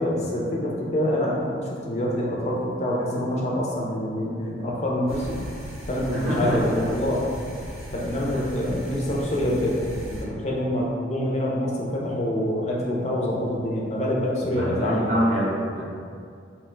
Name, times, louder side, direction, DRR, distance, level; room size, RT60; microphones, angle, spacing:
voice 1, 0.0-5.4 5.9-7.3 7.9-9.8 10.1-15.1, left 1 dB, 40° left, -4 dB, 0.5 m, -26 dB
sound 1, 5.1-10.2, equal, 5° right, 0.7 m, -37 dB
voice 2, 6.1-6.9 8.3-8.7 14.4-15.8, equal, 45° right, -7 dB, 0.6 m, -26 dB
2.8 x 2.1 x 3.1 m, 2.3 s
head